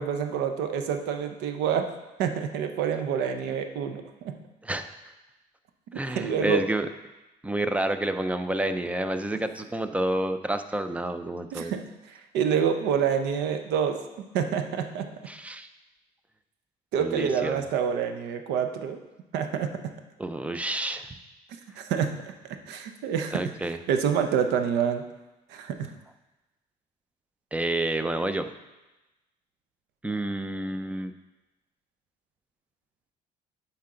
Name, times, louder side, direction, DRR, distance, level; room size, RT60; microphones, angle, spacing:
voice 1, 0.0-1.9 2.2-4.4 6.2-6.6 11.5-11.8 12.1-14.0 14.3-15.1 16.9-19.0 19.3-19.7 21.8-22.3 22.7-23.4 23.9-25.0 25.5-25.9, right 7 dB, 90° right, 7 dB, 0.8 m, -27 dB
voice 2, 5.9-6.9 7.4-11.7 15.3-15.7 17.0-17.7 20.2-21.1 23.3-23.8 27.5-28.5 30.0-31.1, right 1 dB, 10° right, 9 dB, 0.5 m, -29 dB
11.5 x 4.5 x 3.8 m, 1.0 s
cardioid pair, 110°, 17 cm